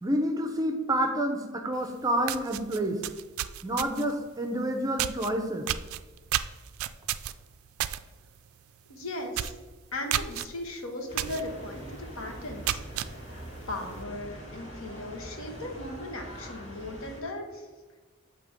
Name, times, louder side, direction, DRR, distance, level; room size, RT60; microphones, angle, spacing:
voice 1, 0.0-3.0 3.6-5.7, right 1 dB, 15° right, 5 dB, 0.5 m, -28 dB
sound 1, 1.8-1.9 2.2-4.2 5.0-5.3 5.7-8.0 8.4-8.6 8.9-9.0 9.3-9.6 10.1-10.5 11.2-11.4 11.9-12.0 12.5-13.1, right 12 dB, 90° right, 0.3 m, -31 dB
voice 2, 8.9-9.5 9.9-11.9 12.1-12.8 13.7-17.7, left 1 dB, 75° left, 2 dB, 1.1 m, -37 dB
sound 2, 11.1-17.2, right 1 dB, 60° left, 1.7 m, -43 dB
7.7 x 2.9 x 5.0 m, 1.3 s
head